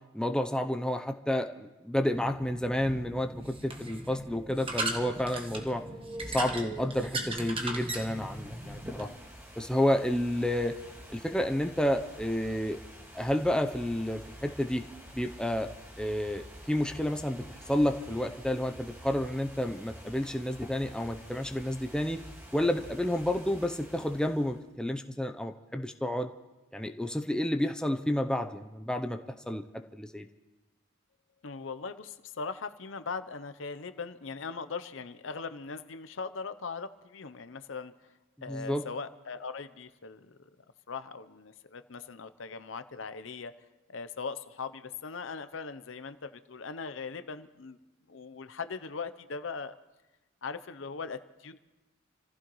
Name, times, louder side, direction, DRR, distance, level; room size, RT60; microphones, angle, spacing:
voice 1, 0.1-5.8 6.3-9.1 9.6-10.7 11.1-12.8 13.1-14.8 15.1-15.7 16.0-22.2 22.5-26.3 26.7-29.2 29.5-29.6 29.9-30.3 38.5-38.8, left 1 dB, 5° left, 5 dB, 0.6 m, -30 dB
sound 1, 2.1-9.0, right 2 dB, 25° right, 1.3 m, -38 dB
sound 2, 7.9-24.7, equal, 10° right, 1.9 m, -48 dB
voice 2, 31.4-37.9 38.4-40.4 40.9-43.5 43.9-47.8 48.1-49.7 50.4-51.6, left 5 dB, 70° left, 12 dB, 0.7 m, -40 dB
28.0 x 15.0 x 3.1 m, 1.1 s
head